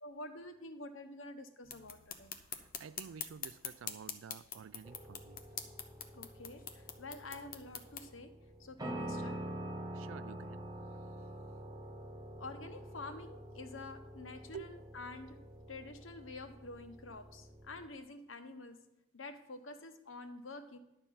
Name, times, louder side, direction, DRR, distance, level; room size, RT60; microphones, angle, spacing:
voice 1, 0.0-2.3 6.1-8.3 8.6-9.4 12.4-15.4 15.7-18.8 19.1-20.8, left 2 dB, 85° left, 1.0 m, -48 dB
sound 1, 1.6-8.1, left 8 dB, 45° left, 0.9 m, -46 dB
voice 2, 2.8-5.4 9.9-10.7 14.5-14.7, right 7 dB, 85° right, 0.4 m, -50 dB
sound 2, 4.8-17.9, right 1 dB, 20° right, 0.7 m, -47 dB
11.0 x 4.4 x 7.3 m
head